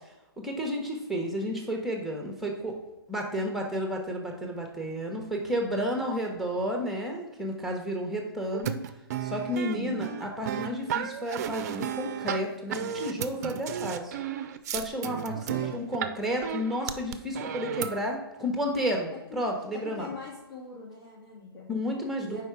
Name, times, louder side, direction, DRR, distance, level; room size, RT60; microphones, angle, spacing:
voice 1, 0.4-2.7 3.1-8.8 9.2-14.1 14.7-15.3 15.7-20.1 21.7-22.4, equal, ahead, 1 dB, 0.9 m, -31 dB
sound 1, 8.5-16.1 16.4-18.0, right 9 dB, 45° right, 0.4 m, -33 dB
voice 2, 15.3-15.8 19.3-19.4 19.7-21.7 22.2-22.4, left 3 dB, 65° left, -7 dB, 2.0 m, -43 dB
5.4 x 4.6 x 4.7 m, 1.0 s
hypercardioid pair, 140°, 13 cm